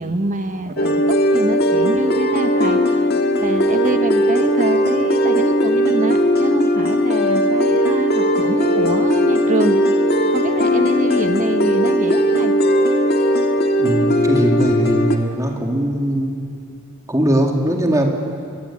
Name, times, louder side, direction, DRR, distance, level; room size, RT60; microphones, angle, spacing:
voice 1, 0.0-2.8 3.4-9.8 10.3-12.5, right 1 dB, 35° right, 7 dB, 1.3 m, -25 dB
sound 1, 0.8-15.2, equal, 45° left, 1.8 m, -17 dB
voice 2, 13.8-16.4 17.1-18.1, right 1 dB, 15° right, 1 dB, 2.4 m, -20 dB
23.0 x 22.5 x 8.6 m, 2.3 s
head